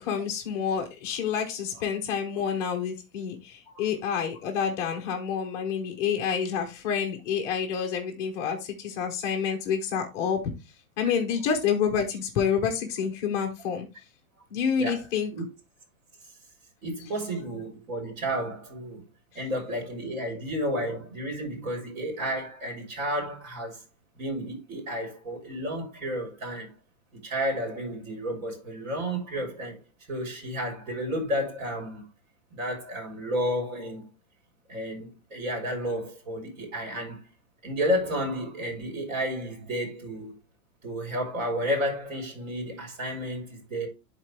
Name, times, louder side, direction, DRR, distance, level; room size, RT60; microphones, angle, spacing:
voice 1, 0.0-10.4 11.0-13.9 14.5-15.3, left 7 dB, 10° left, 0.4 m, -28 dB
voice 2, 16.8-19.0 19.3-23.8 24.2-26.7 27.2-29.8 30.1-32.1 32.5-34.0 34.7-37.2 37.6-40.3 40.8-43.9, equal, 65° right, 4.0 m, -31 dB
11.0 x 4.0 x 3.2 m
hypercardioid pair, 155°, 43 cm